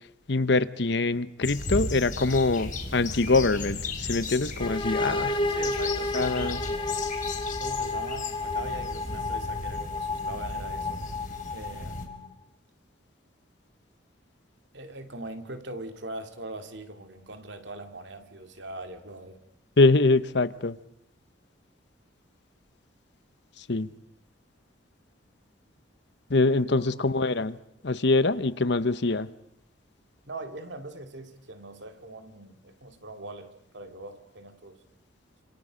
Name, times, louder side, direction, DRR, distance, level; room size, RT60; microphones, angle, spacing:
voice 1, 0.3-5.3 6.1-6.6 19.8-20.8 23.7-23.9 26.3-27.6 27.8-29.3, left 3 dB, 60° left, 0.9 m, -24 dB
sound 1, 1.4-12.1, left 2 dB, 40° left, 4.2 m, -36 dB
sound 2, 4.6-12.3, left 3 dB, 25° left, 1.4 m, -31 dB
voice 2, 5.1-7.1 7.6-11.0 11.5-12.4 14.7-19.4 26.6-27.2 30.2-34.8, right 2 dB, 65° right, 2.3 m, -41 dB
29.0 x 27.5 x 5.2 m
head